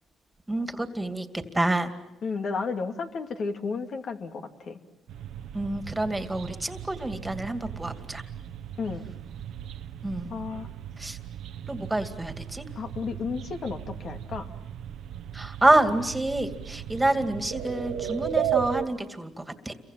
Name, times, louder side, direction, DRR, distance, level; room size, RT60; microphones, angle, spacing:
voice 1, 0.5-1.9 5.5-8.2 10.0-10.3 11.0-11.2 11.7-12.6 15.3-19.7, right 2 dB, 10° right, 8 dB, 2.4 m, -27 dB
voice 2, 2.2-4.8 8.8-9.0 10.3-10.7 12.8-14.5, left 4 dB, 55° left, 5 dB, 2.5 m, -32 dB
sound 1, 5.1-18.9, right 10 dB, 80° right, 1.1 m, -36 dB
30.0 x 24.0 x 7.4 m, 0.98 s
cardioid pair, 90°, 0 cm